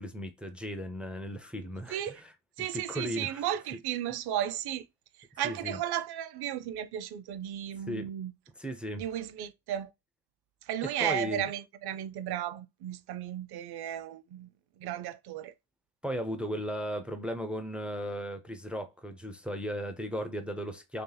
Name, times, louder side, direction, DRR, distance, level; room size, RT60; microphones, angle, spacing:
voice 1, 0.0-2.3 2.7-3.5 5.4-5.8 7.9-8.1 8.6-9.0 10.8-11.5 16.0-21.0, equal, 5° right, 0.3 m, -36 dB
voice 2, 1.9-2.2 2.6-4.9 5.4-8.3 9.0-9.9 10.7-14.5 14.8-15.5, right 11 dB, 55° right, 0.6 m, -34 dB
3.2 x 2.9 x 3.8 m
cardioid pair, 140°, 46 cm